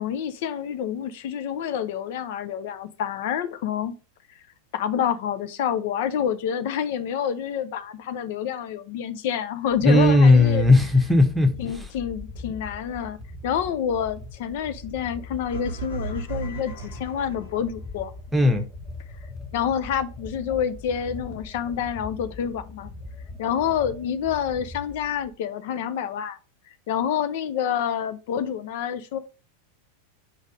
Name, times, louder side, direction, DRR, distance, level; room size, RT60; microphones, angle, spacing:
voice 1, 0.0-4.0 4.7-10.6 11.6-13.2 13.4-18.1 19.5-22.9 23.4-26.4 26.9-29.2, left 8 dB, 50° left, 0.7 m, -28 dB
sound 1, 9.7-25.3, left 2 dB, 20° left, 1.7 m, -41 dB
voice 2, 9.8-11.5 18.3-18.6, left 2 dB, 5° right, 1.1 m, -16 dB
sound 2, 15.5-17.9, right 5 dB, 75° left, 2.1 m, -35 dB
4.9 x 4.0 x 5.1 m
figure-of-eight pair, 90°, 0 cm